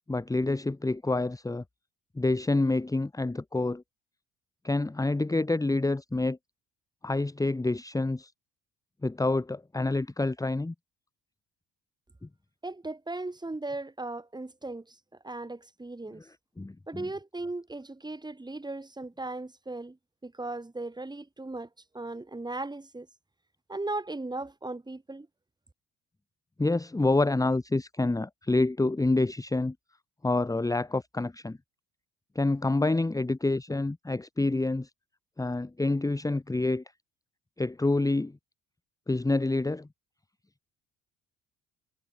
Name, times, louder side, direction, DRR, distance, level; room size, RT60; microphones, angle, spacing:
voice 1, 0.1-1.6 2.1-3.8 4.6-6.4 7.0-8.3 9.0-10.7 12.2-12.3 16.6-17.1 26.6-29.7 30.2-31.6 32.3-34.9 35.4-36.8 37.6-38.4 39.1-39.9, left 2 dB, 10° left, 1.6 m, -27 dB
voice 2, 12.6-15.0 15.2-16.2 16.9-20.0 20.2-21.7 21.9-23.1 23.7-25.3, right 2 dB, 15° right, 4.6 m, -37 dB
cardioid pair, 90°, 30 cm